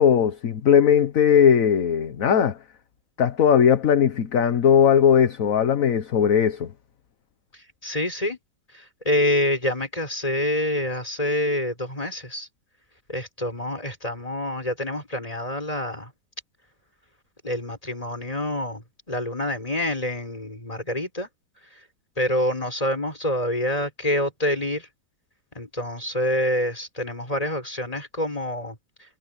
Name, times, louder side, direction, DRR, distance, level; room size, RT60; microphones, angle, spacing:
voice 1, 0.0-2.6 3.2-6.7, left 8 dB, 50° left, 1.4 m, -18 dB
voice 2, 7.5-8.4 8.7-12.5 13.1-16.1 17.4-21.3 21.7-21.8 22.2-24.9 25.5-28.8, left 1 dB, 20° left, 6.7 m, -27 dB
omnidirectional pair, 2.1 m